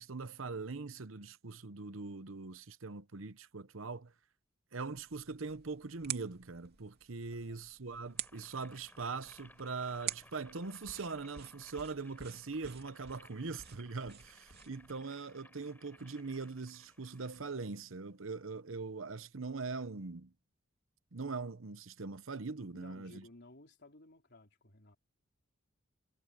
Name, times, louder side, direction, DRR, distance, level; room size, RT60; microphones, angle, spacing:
voice 1, 0.0-4.1 4.7-20.3 21.1-23.2, right 4 dB, 70° right, 0.9 m, -42 dB
sound 1, 4.9-14.9, right 10 dB, 50° right, 3.0 m, -48 dB
Boiling, 8.1-17.5, left 1 dB, 10° left, 4.9 m, -61 dB
voice 2, 22.7-25.0, left 2 dB, 55° left, 3.9 m, -57 dB
head